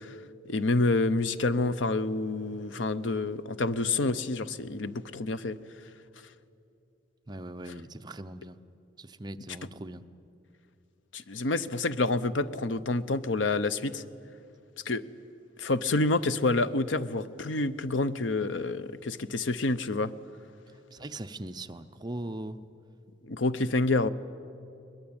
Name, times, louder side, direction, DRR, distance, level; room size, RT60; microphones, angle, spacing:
voice 1, 0.5-5.6 11.1-14.0 14.9-15.0 15.6-20.1 23.2-24.1, left 2 dB, 85° left, 14 dB, 0.8 m, -28 dB
voice 2, 7.3-8.6 9.0-10.0 20.9-22.6, right 1 dB, 20° right, 8 dB, 0.7 m, -40 dB
22.5 x 21.0 x 8.8 m, 2.7 s
head